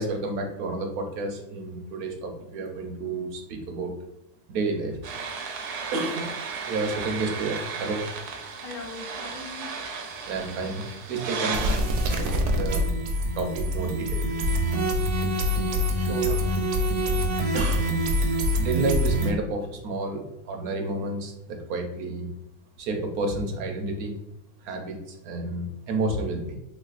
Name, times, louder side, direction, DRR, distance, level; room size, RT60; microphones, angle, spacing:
voice 1, 0.0-3.9 4.5-5.0 5.9-6.4 6.6-8.0 10.3-11.9 12.2-12.9 13.3-14.2 15.9-16.4 17.5-17.9 18.6-22.3 22.8-24.1 24.6-26.6, right 3 dB, 85° right, 1.2 m, -30 dB
sound 1, 5.0-19.3, equal, 65° right, 0.8 m, -27 dB
voice 2, 8.6-9.8 16.0-16.9, left 4 dB, 85° left, 1.1 m, -42 dB
3.4 x 3.2 x 2.4 m
omnidirectional pair, 1.5 m